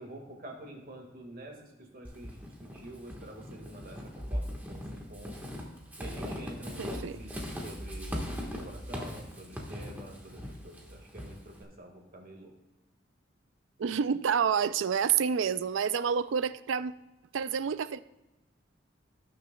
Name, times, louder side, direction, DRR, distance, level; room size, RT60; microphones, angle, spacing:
voice 1, 0.0-5.5 6.0-8.2 8.5-12.5, right 1 dB, 50° right, 2 dB, 1.8 m, -47 dB
Walk footsteps / Squeak, 2.0-11.6, equal, 10° right, 1.4 m, -39 dB
voice 2, 6.8-7.2 13.8-16.9 17.3-18.0, right 7 dB, 85° right, 15 dB, 0.4 m, -28 dB
18.0 x 6.6 x 2.3 m, 0.99 s
head